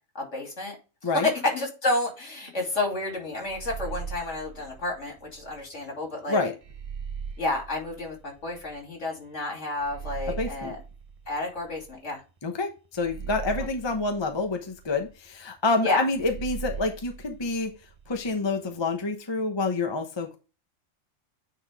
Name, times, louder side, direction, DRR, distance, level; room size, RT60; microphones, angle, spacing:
voice 1, 0.1-0.8 1.0-6.4 7.4-10.8 11.3-12.2 15.8-16.0, left 2 dB, 65° left, 0 dB, 3.2 m, -30 dB
sound 1, 3.5-5.6 6.6-8.8 9.8-12.1 13.0-15.1 16.1-18.3, right 6 dB, 45° right, 0.5 m, -40 dB
voice 2, 10.3-10.7 12.4-17.7 18.1-20.4, left 3 dB, 25° left, 4 dB, 0.9 m, -28 dB
9.5 x 3.9 x 3.4 m, 0.31 s
omnidirectional pair, 1.4 m